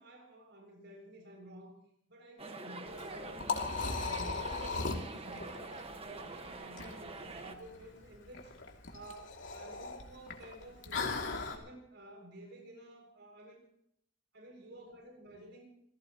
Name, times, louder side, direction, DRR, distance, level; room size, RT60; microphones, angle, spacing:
voice 1, 0.0-1.8 2.1-3.8 4.0-8.5 8.9-11.2 11.5-13.7 14.3-15.6, right 1 dB, 65° right, 1 dB, 7.1 m, -52 dB
sound 1, 2.4-7.6, right 3 dB, 30° right, 1.6 m, -45 dB
Liquid, 2.9-11.6, left 4 dB, 75° left, 2.8 m, -39 dB
28.0 x 17.0 x 3.1 m, 0.72 s
head